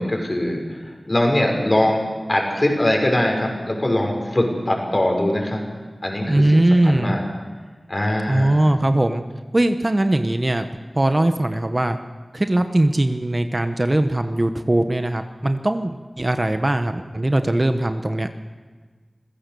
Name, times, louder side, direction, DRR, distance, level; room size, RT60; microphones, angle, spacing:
voice 1, 0.0-2.0 2.3-5.6 6.0-7.2 7.9-8.6, left 1 dB, 35° left, 1 dB, 6.2 m, -22 dB
voice 2, 6.3-7.2 8.3-9.2 9.5-10.6 10.9-12.0 12.3-18.3, right 1 dB, 35° right, 7 dB, 1.2 m, -20 dB
26.5 x 16.0 x 7.0 m, 1.4 s
wide cardioid pair, 45°, 0 cm